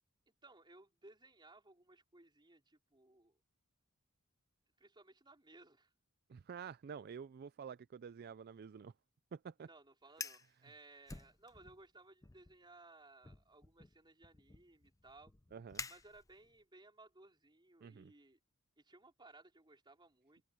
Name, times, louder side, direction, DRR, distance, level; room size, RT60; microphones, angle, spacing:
voice 1, 0.4-3.4 4.8-5.9 9.6-15.3 15.9-18.4 18.8-20.4, right 2 dB, 20° right, 4.5 m, -61 dB
voice 2, 6.3-8.9 9.3-9.7 15.5-15.9 17.8-18.1, right 6 dB, 45° right, 0.4 m, -49 dB
Fire, 10.1-10.5 11.1-11.8 12.2-12.5 13.2-16.6, left 4 dB, 15° left, 0.6 m, -50 dB
open air
head